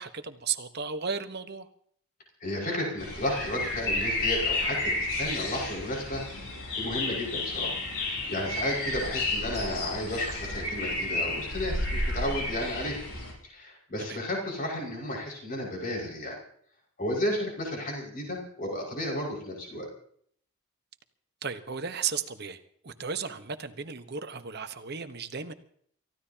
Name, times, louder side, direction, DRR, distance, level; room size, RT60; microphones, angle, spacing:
voice 1, 0.0-1.7 14.0-14.2 21.4-25.5, right 6 dB, 45° right, 9 dB, 1.1 m, -35 dB
voice 2, 2.4-6.2 6.5-7.8 8.1-13.0 13.4-16.4 17.0-19.9, left 1 dB, 40° left, -1 dB, 5.5 m, -33 dB
sound 1, 3.0-13.3, left 2 dB, 80° left, 6.3 m, -31 dB
29.0 x 15.5 x 2.9 m, 0.62 s
head